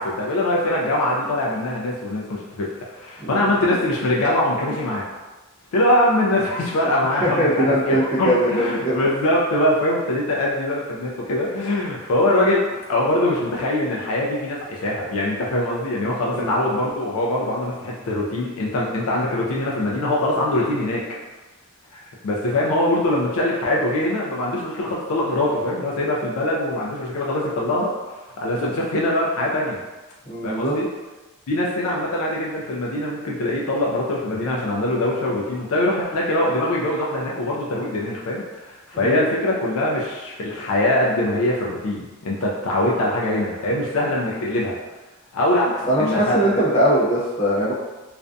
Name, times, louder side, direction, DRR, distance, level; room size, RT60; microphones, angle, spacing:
voice 1, 0.0-5.0 5.7-21.0 21.9-29.8 30.4-30.8 31.5-44.7 45.3-46.4, left 1 dB, 80° left, -4 dB, 0.4 m, -23 dB
voice 2, 3.2-3.5 7.2-9.1 16.3-16.5 30.3-30.8 38.9-39.3 45.8-47.7, equal, 30° left, -10 dB, 0.9 m, -21 dB
2.4 x 2.2 x 2.5 m, 1.2 s
head